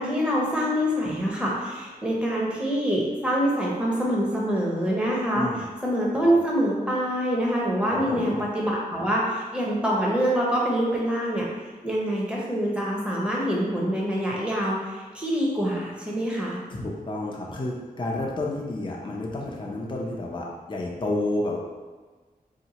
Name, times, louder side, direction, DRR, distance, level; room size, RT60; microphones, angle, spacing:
voice 1, 0.0-11.4 11.8-16.6, equal, 5° right, -4 dB, 0.8 m, -25 dB
voice 2, 5.3-5.7 7.9-8.4 16.7-21.6, left 2 dB, 30° left, -2 dB, 0.5 m, -30 dB
2.8 x 2.1 x 4.0 m, 1.3 s
wide cardioid pair, 70°, 16 cm